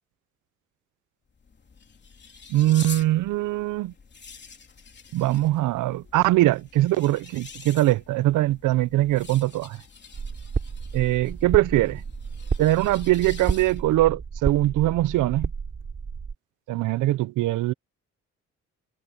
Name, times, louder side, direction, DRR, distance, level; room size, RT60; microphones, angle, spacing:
sound 1, 1.3-14.0, left 5 dB, 35° left, 3.5 m, -46 dB
voice 1, 2.5-3.9 5.1-9.8 10.9-12.0 12.6-15.5 16.7-17.7, right 16 dB, 80° right, 0.7 m, -22 dB
sound 2, 10.1-16.3, right 5 dB, 40° right, 4.7 m, -31 dB
cardioid pair, 90°, 30 cm